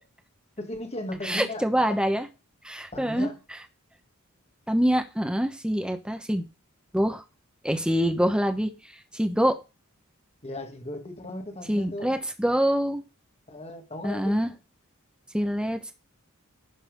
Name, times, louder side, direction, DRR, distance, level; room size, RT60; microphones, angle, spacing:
voice 1, 0.6-2.0 2.9-3.4 10.4-12.2 13.5-14.5, left 1 dB, 30° left, 1.9 m, -37 dB
voice 2, 1.2-2.2 2.6-3.3 4.7-6.4 6.9-7.2 7.6-8.7 9.1-9.6 11.7-13.0 14.0-14.5 15.3-15.9, equal, 5° right, 1.1 m, -25 dB
11.0 x 4.2 x 5.3 m
head